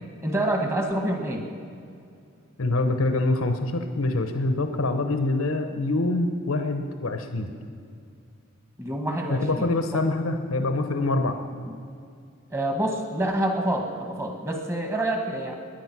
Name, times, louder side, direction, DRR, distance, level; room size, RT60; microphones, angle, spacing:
voice 1, 0.2-1.4 8.8-9.7 12.5-15.5, right 1 dB, 15° right, 3 dB, 1.5 m, -27 dB
voice 2, 2.6-7.5 9.3-11.4, left 2 dB, 85° left, 7 dB, 0.9 m, -25 dB
20.5 x 10.0 x 6.1 m, 2.4 s
head